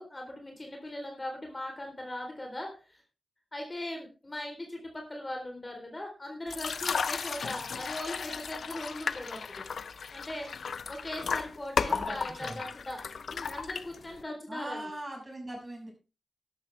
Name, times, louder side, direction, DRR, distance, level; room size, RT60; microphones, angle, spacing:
voice 1, 0.0-3.0 3.5-9.6 10.1-10.5 10.9-13.0 13.3-14.9, left 1 dB, 25° left, 2 dB, 3.9 m, -39 dB
sound 1, 6.5-14.2, left 5 dB, 80° left, 0.6 m, -34 dB
voice 2, 11.9-12.6 14.5-15.9, right 1 dB, 25° right, 1 dB, 6.6 m, -40 dB
12.5 x 12.0 x 3.5 m, 0.32 s
wide cardioid pair, 95°, 0 cm